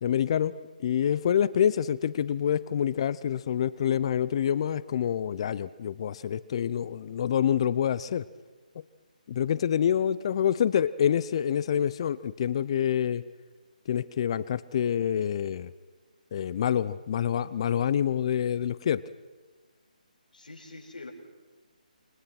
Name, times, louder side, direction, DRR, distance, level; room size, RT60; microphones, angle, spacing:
voice 1, 0.0-0.5 0.8-8.2 9.3-13.2 13.9-15.7 16.3-19.0, left 9 dB, 40° left, 18 dB, 0.8 m, -27 dB
voice 2, 20.3-21.1, left 3 dB, 75° left, 1 dB, 7.4 m, -45 dB
28.5 x 25.5 x 6.1 m, 1.3 s
figure-of-eight pair, 150°, 5 cm